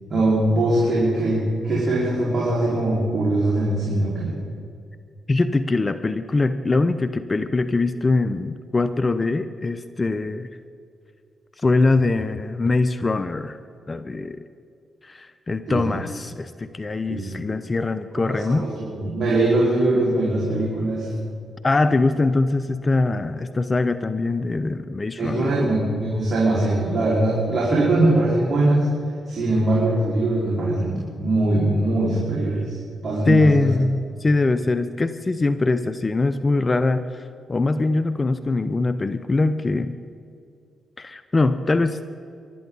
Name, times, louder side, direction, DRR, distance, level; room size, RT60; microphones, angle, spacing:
voice 1, 0.1-4.4 15.7-16.0 17.1-17.3 18.2-21.1 25.2-28.9 29.3-32.8 33.0-33.7, right 2 dB, 50° right, -6 dB, 4.9 m, -21 dB
voice 2, 5.3-10.5 11.6-13.6 13.9-14.4 15.0-18.7 21.6-25.5 33.3-37.2 37.5-40.0 41.0-42.0, left 3 dB, 35° left, 12 dB, 0.8 m, -22 dB
25.0 x 12.0 x 4.1 m, 2.4 s
supercardioid pair, 45°, 0 cm